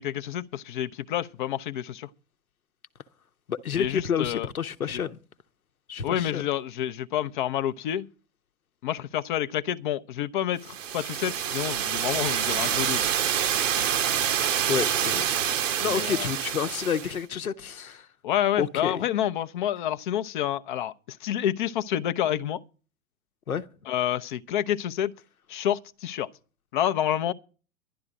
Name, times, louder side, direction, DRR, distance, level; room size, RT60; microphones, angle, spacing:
voice 1, 0.0-2.1 3.7-4.5 6.0-8.1 8.8-13.0 15.8-16.3 18.2-22.6 23.9-25.1 25.5-26.3 26.7-27.3, left 11 dB, 35° left, 0.6 m, -28 dB
voice 2, 3.5-5.2 5.9-6.4 14.7-18.1 18.6-19.0 23.5-23.7, left 7 dB, 75° left, 1.0 m, -30 dB
sound 1, 10.6-17.2, right 9 dB, 60° right, 0.9 m, -27 dB
11.5 x 11.5 x 5.0 m
figure-of-eight pair, 100°, 43 cm